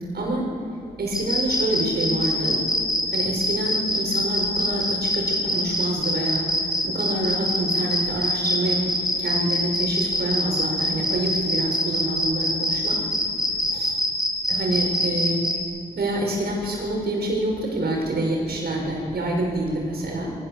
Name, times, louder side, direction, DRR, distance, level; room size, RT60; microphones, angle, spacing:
voice 1, 0.1-0.5 1.0-2.6 3.1-13.0 13.7-13.9 14.5-15.4 15.9-20.3, right 1 dB, 75° right, 0 dB, 6.0 m, -27 dB
sound 1, 1.1-15.6, left 1 dB, 5° right, 5.4 m, -24 dB
23.5 x 18.5 x 7.1 m, 2.8 s
cardioid pair, 55°, 17 cm